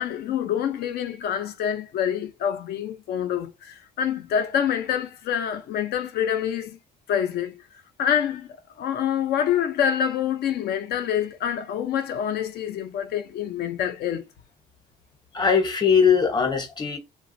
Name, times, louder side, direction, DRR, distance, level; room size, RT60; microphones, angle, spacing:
voice 1, 0.0-6.8 7.1-7.6 8.0-14.2, left 9 dB, 70° left, 0.6 m, -26 dB
voice 2, 15.3-17.0, left 6 dB, 25° left, 0.9 m, -20 dB
3.2 x 2.3 x 2.6 m
cardioid pair, 110°, 17 cm